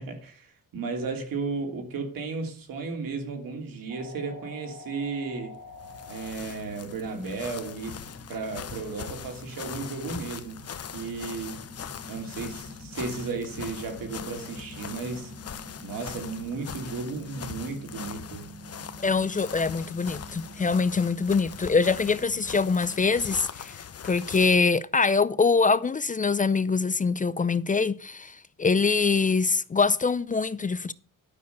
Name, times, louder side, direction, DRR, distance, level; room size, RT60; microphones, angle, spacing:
voice 1, 0.0-5.6 6.1-10.6 10.9-11.6 12.1-15.3 15.8-18.5, right 4 dB, 90° right, 3.0 m, -34 dB
sound 1, 3.9-23.3, equal, 70° right, 4.1 m, -47 dB
sound 2, 5.6-24.7, left 8 dB, 45° left, 0.9 m, -41 dB
voice 2, 19.0-23.8 24.0-30.9, left 4 dB, 25° left, 0.5 m, -24 dB
12.0 x 6.4 x 6.8 m
cardioid pair, 120°, 33 cm